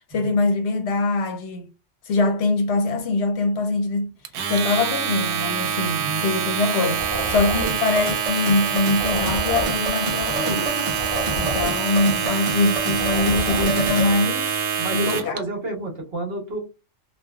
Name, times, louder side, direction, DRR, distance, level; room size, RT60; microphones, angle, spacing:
voice 1, 0.1-1.7 2.0-4.1 4.5-10.7 11.4-14.5 14.9-15.4, left 3 dB, 65° left, 0.8 m, -23 dB
Domestic sounds home sounds, 4.2-15.4, right 7 dB, 85° right, 1.0 m, -26 dB
sound 1, 6.9-14.3, equal, 5° left, 1.1 m, -32 dB
sound 2, 7.7-14.1, right 2 dB, 35° right, 0.6 m, -30 dB
voice 2, 14.8-16.6, right 2 dB, 55° right, 1.1 m, -30 dB
3.0 x 2.2 x 2.3 m
omnidirectional pair, 1.3 m